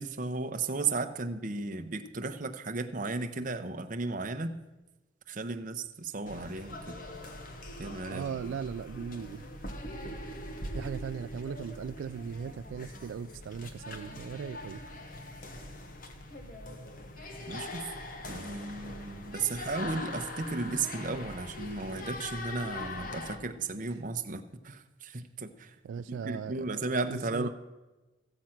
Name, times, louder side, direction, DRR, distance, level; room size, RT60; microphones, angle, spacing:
voice 1, 0.0-4.5 5.3-6.9 7.8-8.3 17.5-17.9 18.3-25.8 26.1-27.5, right 3 dB, 45° right, 7 dB, 0.8 m, -35 dB
sound 1, 6.3-23.4, left 1 dB, 45° left, 1.1 m, -42 dB
voice 2, 8.1-9.4 10.7-14.8 25.8-26.8 27.1-27.5, right 7 dB, 90° right, 13 dB, 0.3 m, -38 dB
15.0 x 7.6 x 5.8 m, 1.1 s
head